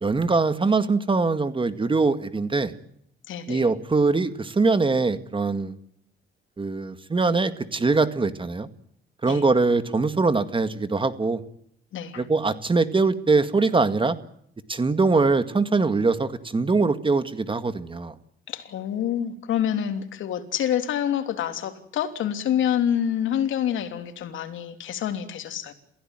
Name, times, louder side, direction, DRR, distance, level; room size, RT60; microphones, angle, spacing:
voice 1, 0.0-2.7 3.5-5.7 6.6-8.7 9.2-11.4 12.2-14.2 14.7-18.1, right 3 dB, 25° right, 11 dB, 2.0 m, -22 dB
voice 2, 3.3-3.7 9.3-9.4 11.9-12.2 18.5-25.7, left 9 dB, 80° left, 7 dB, 3.2 m, -27 dB
29.0 x 16.0 x 9.0 m, 0.70 s
cardioid pair, 90°, 20 cm